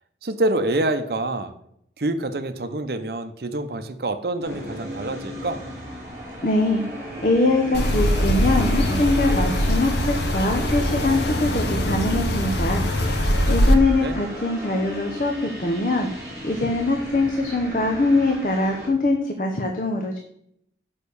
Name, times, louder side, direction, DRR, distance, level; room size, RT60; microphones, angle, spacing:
voice 1, 0.2-1.5 2.0-5.6 14.0-14.2, right 2 dB, 60° right, 9 dB, 0.7 m, -26 dB
sound 1, 4.4-18.9, equal, 10° right, 3.5 m, -35 dB
voice 2, 6.4-6.8 7.2-12.8 13.5-20.2, left 2 dB, 45° left, 3 dB, 0.8 m, -23 dB
sound 2, 7.7-13.7, equal, 75° left, 1.0 m, -22 dB
6.6 x 5.3 x 6.9 m, 0.72 s
head